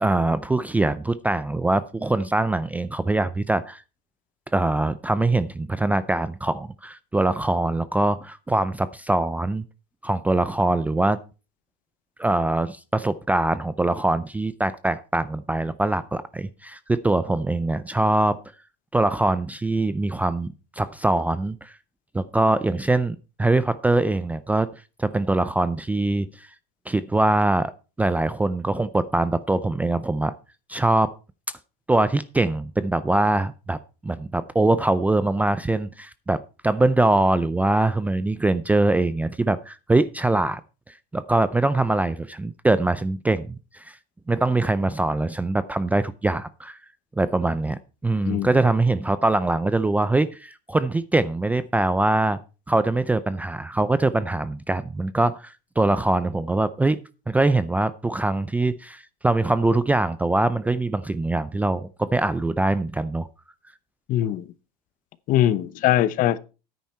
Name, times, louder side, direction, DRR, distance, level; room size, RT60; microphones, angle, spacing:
voice 1, 0.0-3.8 4.5-9.6 10.0-11.2 12.2-18.4 18.9-21.8 22.1-24.7 25.0-26.5 26.9-27.7 28.0-30.3 30.7-31.1 31.9-33.8 34.0-40.6 41.1-44.0 44.3-46.8 47.2-52.4 52.7-57.0 57.3-63.3, right 2 dB, 10° right, 0.4 m, -23 dB
voice 2, 64.1-64.4 65.3-66.4, left 12 dB, 45° left, 0.8 m, -21 dB
10.0 x 9.4 x 4.3 m
supercardioid pair, 135°, 19 cm